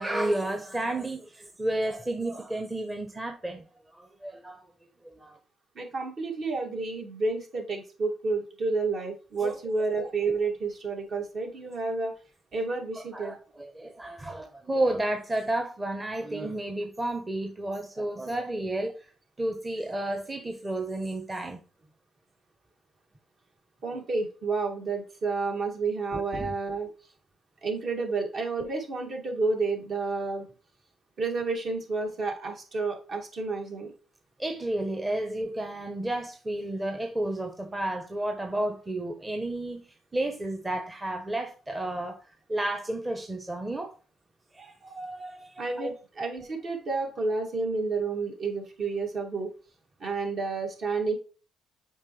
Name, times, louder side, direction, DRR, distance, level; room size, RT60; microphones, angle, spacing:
voice 1, 0.0-3.6 3.9-4.6 5.1-5.4 9.4-9.6 13.0-19.1 19.4-21.6 23.9-24.0 26.1-26.5 34.4-39.9 40.1-42.2 42.5-44.0 44.5-45.9, right 1 dB, 20° right, 1.0 m, -32 dB
voice 2, 5.7-12.1 12.5-13.3 23.8-26.9 27.6-30.5 31.2-33.9 45.6-49.5 50.0-51.2, right 3 dB, 55° right, 2.7 m, -30 dB
7.3 x 5.1 x 3.3 m
cardioid pair, 90°, 0 cm